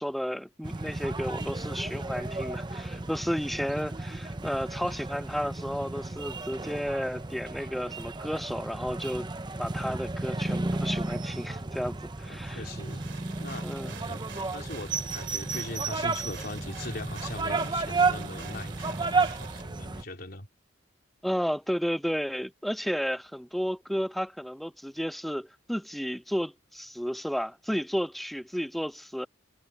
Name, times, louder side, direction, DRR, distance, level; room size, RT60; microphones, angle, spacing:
voice 1, 0.0-9.3 9.6-12.6 13.6-13.9 21.2-29.3, equal, ahead, 0.3 m, -32 dB
sound 1, 0.6-20.0, right 3 dB, 25° right, 0.8 m, -33 dB
voice 2, 12.2-13.0 13.4-14.2 14.5-20.5, left 2 dB, 50° left, 3.8 m, -41 dB
sound 2, 12.7-19.6, right 7 dB, 65° right, 3.1 m, -46 dB
head